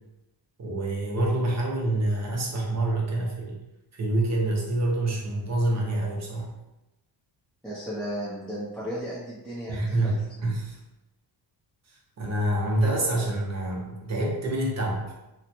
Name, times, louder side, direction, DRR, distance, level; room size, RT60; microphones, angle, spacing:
voice 1, 0.6-3.5 4.0-6.5 9.7-10.8 12.2-15.0, right 1 dB, 35° right, -2 dB, 0.7 m, -27 dB
voice 2, 7.6-10.2, equal, ahead, -8 dB, 0.4 m, -34 dB
3.0 x 2.1 x 4.1 m, 0.97 s
wide cardioid pair, 170°, 44 cm